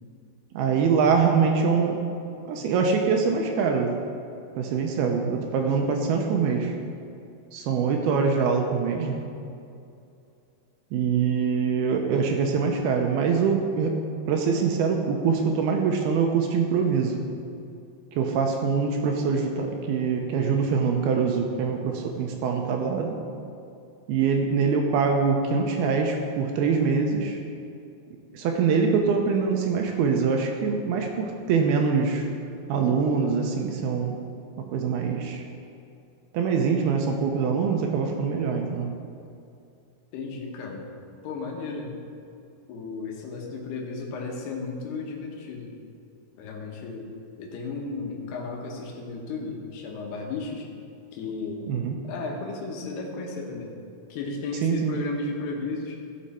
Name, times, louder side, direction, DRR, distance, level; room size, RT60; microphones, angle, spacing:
voice 1, 0.5-2.1 2.5-4.0 4.6-6.7 7.5-9.2 10.9-14.0 14.3-17.2 18.1-23.2 24.1-27.4 28.3-32.3 32.7-34.2 34.6-35.4 36.3-38.9 51.7-52.0 54.6-55.0, right 5 dB, 80° right, 3 dB, 2.5 m, -24 dB
voice 2, 40.1-40.9 41.2-41.9 42.7-45.7 46.4-47.1 47.4-50.7 51.1-51.7 52.0-53.7 54.1-56.0, left 3 dB, 75° left, 0 dB, 3.2 m, -34 dB
15.5 x 6.4 x 4.3 m, 2.5 s
omnidirectional pair, 4.7 m